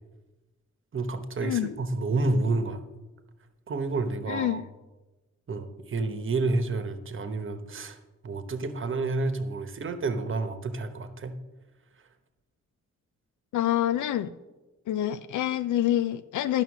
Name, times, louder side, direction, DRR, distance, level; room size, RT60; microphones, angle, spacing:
voice 1, 0.9-2.8 3.7-4.6 5.5-8.0 8.2-11.4, right 3 dB, 45° right, 1.1 m, -29 dB
voice 2, 4.3-4.6 13.5-14.3 14.9-16.6, left 12 dB, 85° left, 0.5 m, -26 dB
11.5 x 5.8 x 7.2 m
wide cardioid pair, 120°, 29 cm